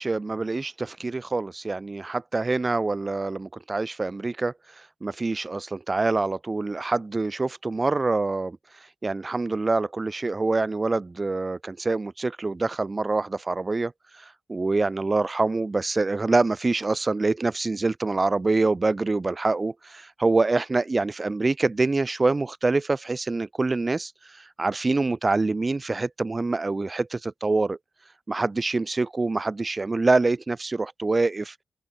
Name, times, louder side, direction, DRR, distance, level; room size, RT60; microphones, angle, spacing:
voice 1, 0.0-4.5 5.0-8.6 9.0-13.9 14.2-24.1 24.4-27.8 28.3-31.5, right 3 dB, 20° right, 2.5 m, -25 dB
open air
wide cardioid pair, 165°, 0 cm